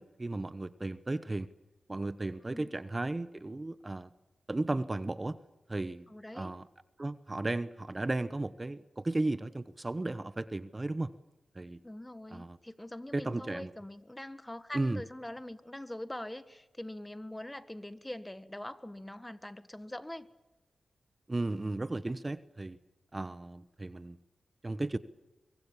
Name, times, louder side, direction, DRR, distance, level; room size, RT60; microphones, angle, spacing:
voice 1, 0.0-1.5 1.9-4.1 4.5-5.4 5.7-6.0 6.3-6.6 7.0-11.1 11.5-11.8 12.3-12.6 13.1-13.7 14.7-15.0 21.3-22.8 23.1-24.2 24.6-25.0, right 2 dB, 30° right, 14 dB, 1.0 m, -35 dB
voice 2, 6.1-6.5 11.8-20.3, left 1 dB, 15° left, 13 dB, 1.6 m, -43 dB
24.5 x 24.0 x 7.4 m, 1.0 s
cardioid pair, 60°, 0 cm